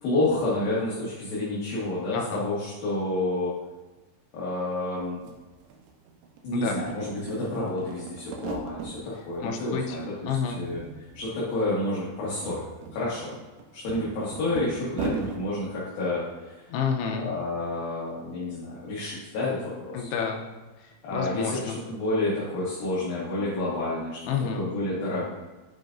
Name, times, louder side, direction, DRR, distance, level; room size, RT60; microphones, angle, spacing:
voice 1, 0.0-3.5 4.3-5.2 6.4-10.8 11.1-12.6 12.9-13.3 13.7-16.5 17.2-20.1 21.0-24.2 24.6-25.3, left 2 dB, 65° left, -8 dB, 2.7 m, -29 dB
sound 1, 5.0-5.1 5.3-6.4 6.7-9.0 9.4-10.1 10.4-11.2 11.5-11.6 12.1-15.4, right 4 dB, 80° right, 2.9 m, -38 dB
voice 2, 9.4-10.0 10.3-10.6 16.7-17.3 19.9-20.5 20.8-21.8 24.2-24.6, left 6 dB, 85° left, 2 dB, 2.5 m, -29 dB
9.2 x 5.1 x 2.5 m, 1.2 s
omnidirectional pair, 5.3 m